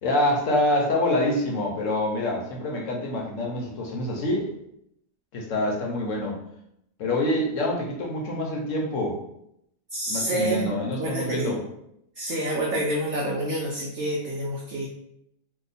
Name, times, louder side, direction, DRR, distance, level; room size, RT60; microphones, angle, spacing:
voice 1, 0.0-4.5 5.3-6.4 7.0-9.2 10.1-11.6, left 1 dB, 60° left, -1 dB, 0.9 m, -26 dB
voice 2, 9.9-10.7 11.0-11.5 12.2-14.9, right 1 dB, 70° right, -2 dB, 0.7 m, -28 dB
2.9 x 2.2 x 4.0 m, 0.76 s
omnidirectional pair, 1.7 m